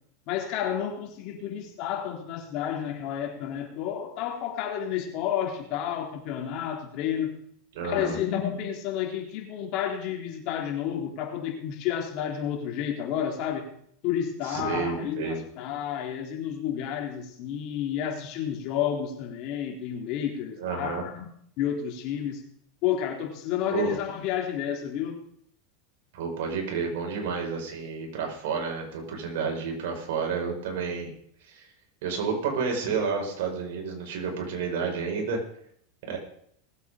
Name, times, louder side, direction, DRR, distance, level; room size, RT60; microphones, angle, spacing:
voice 1, 0.3-7.3 7.8-13.7 14.0-21.3 21.6-22.4 22.8-25.2, left 9 dB, 50° left, 2 dB, 3.3 m, -30 dB
voice 2, 7.7-8.2 14.4-15.4 20.6-21.0 23.7-23.9 26.1-31.1 31.5-31.7 32.0-35.4 36.0-36.2, right 5 dB, 70° right, 1 dB, 5.1 m, -30 dB
19.5 x 8.4 x 5.0 m, 0.66 s
supercardioid pair, 135°, 0 cm